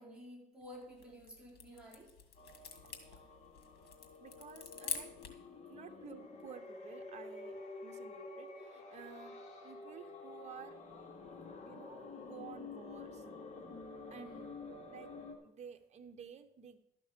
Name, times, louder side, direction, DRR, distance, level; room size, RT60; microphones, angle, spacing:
voice 1, 0.0-2.1 14.1-14.7, equal, 5° right, -4 dB, 4.2 m, -52 dB
sound 1, 0.8-5.5, left 7 dB, 70° left, 1.9 m, -46 dB
sound 2, 2.4-15.4, left 3 dB, 45° left, 2.3 m, -50 dB
voice 2, 2.8-3.2 4.2-5.2 5.7-9.4 9.6-10.8 11.6-13.2 14.1-14.3 14.9-15.1 15.4-16.8, right 8 dB, 40° right, 6 dB, 1.1 m, -53 dB
12.5 x 6.0 x 7.4 m, 0.76 s
cardioid pair, 110°, 17 cm